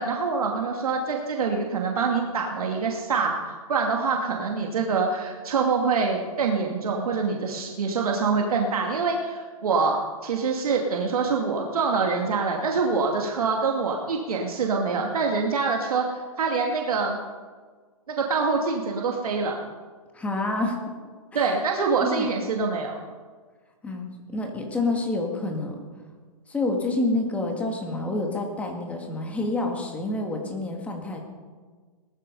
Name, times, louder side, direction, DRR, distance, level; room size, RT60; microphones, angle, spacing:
voice 1, 0.0-17.2 18.2-19.6 21.3-23.0, right 4 dB, 75° right, 1 dB, 2.4 m, -25 dB
voice 2, 20.1-20.8 21.3-21.4 22.0-22.3 23.8-25.8 26.5-31.2, left 2 dB, 5° left, 2 dB, 2.1 m, -28 dB
19.0 x 13.5 x 5.4 m, 1.5 s
hypercardioid pair, 155°, 19 cm